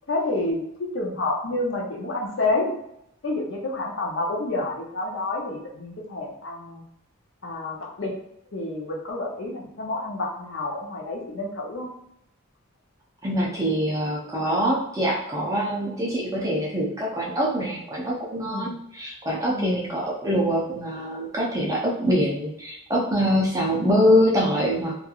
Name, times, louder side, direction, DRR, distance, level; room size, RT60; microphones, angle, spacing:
voice 1, 0.1-2.7 3.2-6.8 7.4-8.1 8.5-11.9 18.4-18.7 19.5-19.8, left 2 dB, 55° left, -1 dB, 0.6 m, -29 dB
voice 2, 13.2-25.0, equal, 15° right, -3 dB, 0.4 m, -24 dB
2.9 x 2.4 x 2.3 m, 0.78 s
head